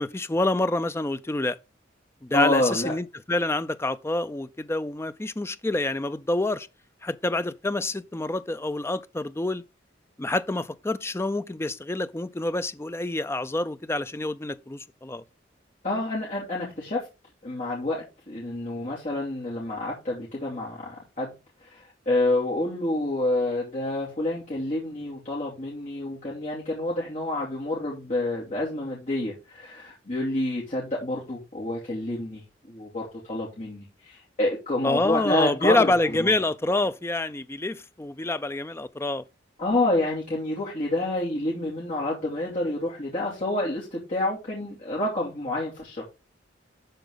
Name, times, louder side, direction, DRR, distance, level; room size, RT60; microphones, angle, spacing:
voice 1, 0.0-1.6 2.2-6.7 7.0-9.6 10.2-15.2 34.8-39.2, left 2 dB, 15° left, 0.5 m, -27 dB
voice 2, 2.3-2.9 15.8-17.1 17.4-21.3 21.6-36.3 39.6-46.1, left 1 dB, 40° left, 2.9 m, -28 dB
12.0 x 4.6 x 3.8 m
head